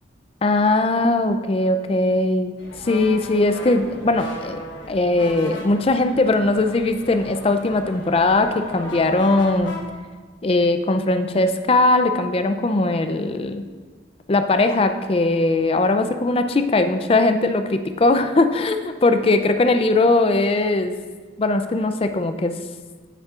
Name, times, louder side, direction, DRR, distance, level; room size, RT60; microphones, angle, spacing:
voice 1, 0.4-2.6 2.8-4.6 4.9-9.7 10.4-13.6 14.3-21.0 21.4-22.5, left 2 dB, 30° left, 8 dB, 0.4 m, -19 dB
sound 1, 2.6-9.8, left 2 dB, 80° left, 1.4 m, -37 dB
9.0 x 8.3 x 2.4 m, 1.4 s
head